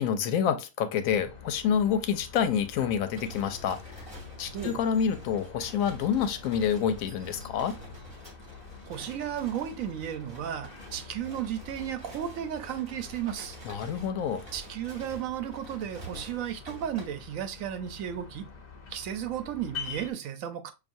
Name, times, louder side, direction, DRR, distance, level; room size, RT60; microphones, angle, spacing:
voice 1, 0.0-4.1 4.4-7.8 13.6-14.4, left 8 dB, 75° left, 1.0 m, -28 dB
sound 1, 1.0-20.1, left 5 dB, 40° left, 0.7 m, -47 dB
sound 2, 3.1-17.1, equal, 25° right, 1.2 m, -48 dB
voice 2, 8.9-13.6 14.5-18.5 18.9-20.7, right 10 dB, 80° right, 1.0 m, -34 dB
5.7 x 2.5 x 2.6 m
omnidirectional pair, 1.4 m